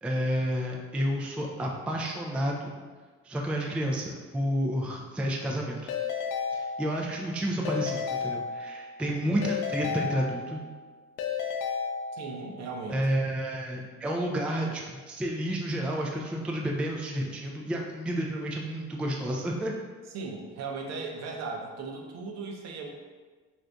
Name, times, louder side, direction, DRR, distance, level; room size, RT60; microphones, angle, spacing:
voice 1, 0.0-2.8 3.2-5.9 6.5-10.6 12.9-19.7, equal, 5° right, 0 dB, 0.3 m, -30 dB
Keyboard (musical) / Ringtone, 5.9-7.2 7.6-9.0 9.4-10.8 11.2-12.5, left 6 dB, 80° left, 0.5 m, -33 dB
voice 2, 9.0-9.5 12.1-13.0 20.1-22.9, right 4 dB, 60° right, 1 dB, 0.6 m, -37 dB
2.6 x 2.5 x 3.3 m, 1.4 s
supercardioid pair, 80°, 31 cm